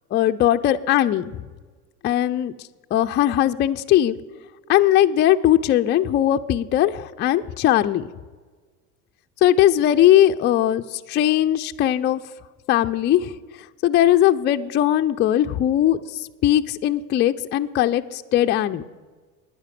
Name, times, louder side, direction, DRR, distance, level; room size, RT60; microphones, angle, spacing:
voice 1, 0.1-1.4 2.0-2.5 2.9-4.2 4.7-8.1 9.4-12.2 12.7-13.3 13.8-18.8, left 12 dB, 25° left, 7 dB, 0.4 m, -19 dB
10.5 x 9.7 x 7.5 m, 1.4 s
hypercardioid pair, 90°, 48 cm